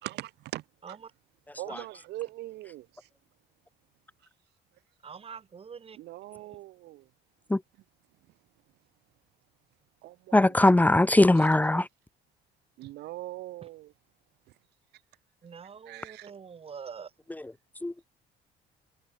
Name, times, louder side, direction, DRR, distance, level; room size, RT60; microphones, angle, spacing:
voice 1, 0.0-1.0 1.6-2.9 6.0-7.0 10.0-10.5 12.8-13.9 15.9-16.3, right 17 dB, 80° right, 4.1 m, -41 dB
voice 2, 5.0-6.0 6.3-6.4 15.4-17.1, right 6 dB, 35° right, 3.6 m, -44 dB
voice 3, 10.3-11.9 17.8-17.9, left 2 dB, 10° left, 1.5 m, -20 dB
cardioid pair, 110°, 17 cm